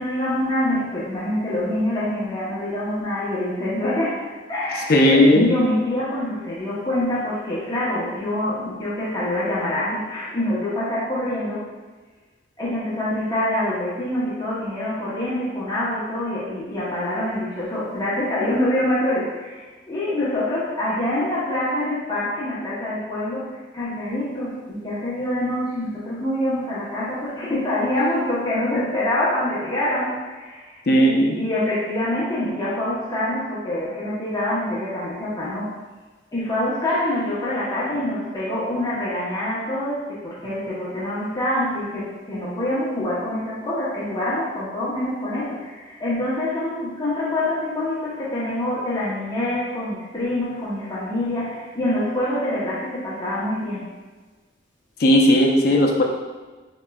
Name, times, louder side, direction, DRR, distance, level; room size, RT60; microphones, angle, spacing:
voice 1, 0.0-11.6 12.6-35.7 36.3-53.9, left 1 dB, 20° left, -9 dB, 0.8 m, -25 dB
voice 2, 4.9-5.5 30.9-31.4 55.0-56.0, equal, 55° left, 1 dB, 0.5 m, -15 dB
4.4 x 2.9 x 2.3 m, 1.3 s
head